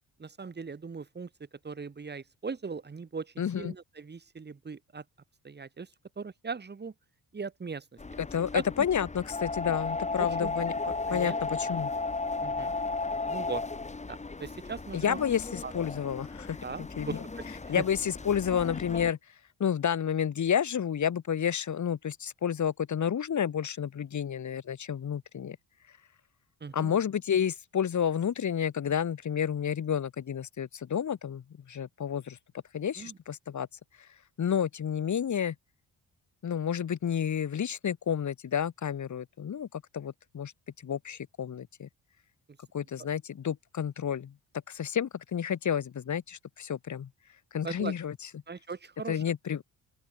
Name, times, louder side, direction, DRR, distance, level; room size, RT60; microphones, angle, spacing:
voice 1, 0.2-1.3 1.6-5.0 5.4-5.9 6.2-6.9 7.3-7.9 8.5-8.6 10.2-10.5 10.8-11.4 12.4-12.7 13.3-13.6 14.1-15.2 15.6-15.7 16.6-17.8 26.6-27.0 33.0-33.2 47.6-47.9 48.5-49.2, right 5 dB, 25° right, 3.5 m, -39 dB
voice 2, 3.4-3.7 8.2-10.7 11.1-11.9 14.9-16.6 17.0-17.2 17.7-19.2 19.6-25.6 26.7-31.4 31.7-32.4 32.7-33.7 34.4-35.5 36.4-40.5 40.8-41.9 42.7-44.3 44.7-47.1 47.5-48.1 49.1-49.6, left 8 dB, 45° left, 4.3 m, -30 dB
sound 1, 8.0-19.1, left 3 dB, 20° left, 3.9 m, -35 dB
open air
cardioid pair, 140°, 39 cm